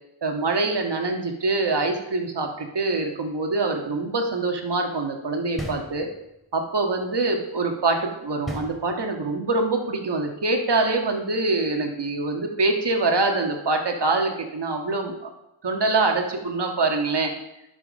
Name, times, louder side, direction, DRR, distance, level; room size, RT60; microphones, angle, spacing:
voice 1, 0.2-6.1 6.5-15.3 15.6-17.3, right 3 dB, 55° right, 3 dB, 1.7 m, -24 dB
sound 1, 5.6-6.5 8.5-9.4, equal, ahead, 2.4 m, -36 dB
11.0 x 5.4 x 5.3 m, 0.89 s
cardioid pair, 65°, 49 cm